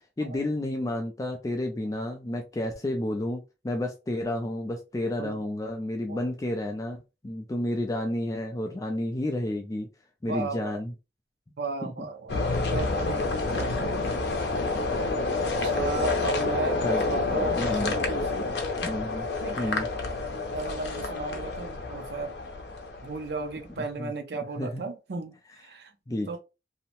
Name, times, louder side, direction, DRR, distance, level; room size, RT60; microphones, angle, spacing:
voice 1, 0.2-9.9 10.2-10.9 11.8-11.9 16.8-17.0 17.3-17.9 18.8-19.3 19.6-19.9 23.8-24.1 24.6-24.8 26.1-26.4, left 1 dB, 20° left, 0.3 m, -31 dB
voice 2, 10.3-10.8 11.6-12.4 12.7-14.1 15.5-18.5 19.4-19.9 20.5-22.4 23.0-25.9 26.3-26.4, right 3 dB, 65° right, 0.5 m, -35 dB
sound 1, 12.3-23.5, left 3 dB, 70° left, 0.6 m, -28 dB
2.7 x 2.0 x 2.9 m
head